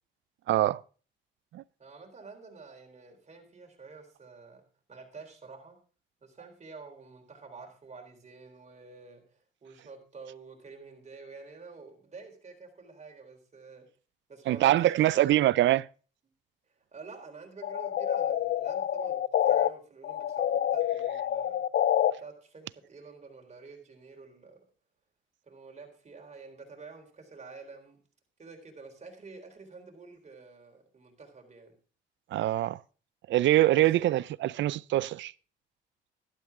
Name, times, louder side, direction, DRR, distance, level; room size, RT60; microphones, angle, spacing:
voice 1, 0.5-0.8 1.5-1.6 14.5-15.9 32.3-32.8 33.3-35.3, right 14 dB, 70° right, 0.5 m, -24 dB
voice 2, 1.8-5.8 6.2-13.9 14.3-15.3 16.9-21.7 22.2-24.6 25.5-28.0 28.4-31.7 33.7-34.1, right 4 dB, 35° right, 3.9 m, -48 dB
sound 1, 17.6-19.7 20.0-22.1, left 10 dB, 60° left, 0.6 m, -27 dB
12.0 x 12.0 x 3.7 m
cardioid pair, 90°, 20 cm